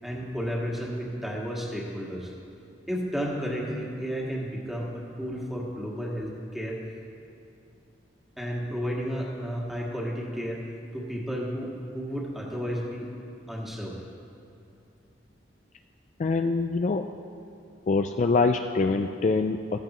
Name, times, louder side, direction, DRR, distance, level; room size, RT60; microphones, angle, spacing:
voice 1, 0.0-2.3 2.9-6.8 8.4-10.6 10.9-13.1 13.5-14.0, equal, ahead, -4 dB, 1.8 m, -32 dB
voice 2, 16.2-17.1 17.9-19.8, left 3 dB, 40° left, 6 dB, 0.3 m, -24 dB
15.0 x 14.5 x 3.1 m, 2.5 s
head